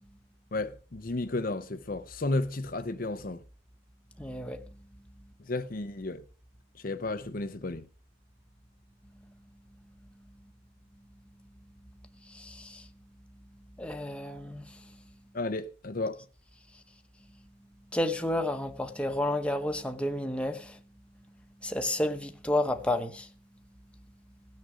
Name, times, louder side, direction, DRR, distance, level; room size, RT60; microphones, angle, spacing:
voice 1, 0.5-3.4 5.5-6.2 6.8-7.9 15.3-16.2, left 2 dB, 45° left, 0.6 m, -33 dB
voice 2, 4.2-4.6 12.2-12.9 13.8-15.0 17.9-20.8 21.6-23.3, left 1 dB, 5° left, 1.0 m, -31 dB
17.0 x 6.3 x 6.3 m
head